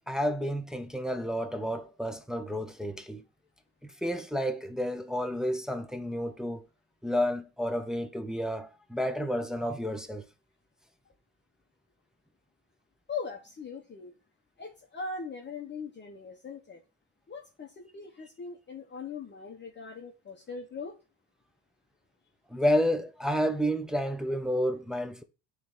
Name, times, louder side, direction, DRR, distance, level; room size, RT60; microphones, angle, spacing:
voice 1, 0.1-3.2 3.8-6.7 7.0-10.2 22.5-25.2, equal, ahead, 0.4 m, -30 dB
voice 2, 13.1-14.1 14.6-16.8 17.3-20.9, left 4 dB, 25° left, 0.8 m, -40 dB
8.6 x 3.2 x 3.7 m
cardioid pair, 120°, 47 cm